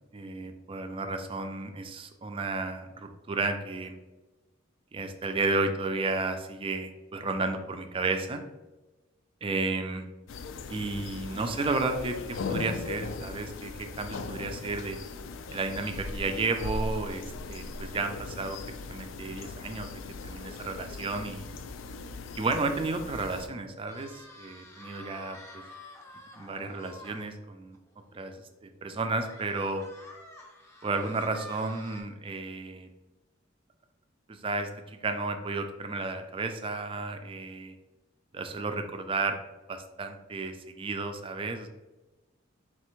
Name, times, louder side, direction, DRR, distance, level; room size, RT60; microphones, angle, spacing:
voice 1, 0.1-4.0 4.9-8.4 9.4-10.0 10.7-15.0 15.5-21.5 22.3-25.6 26.4-27.8 28.1-28.4 28.6-29.8 30.8-32.9 34.3-37.8 38.3-39.4 39.7-41.7, right 3 dB, 25° right, 6 dB, 0.4 m, -32 dB
sound 1, 10.3-23.5, left 3 dB, 70° left, 0.3 m, -39 dB
sound 2, 23.9-27.3 27.7-27.8 28.2-28.3 29.2-32.0, left 1 dB, 15° left, 0.6 m, -48 dB
4.1 x 3.2 x 3.0 m, 1.1 s
head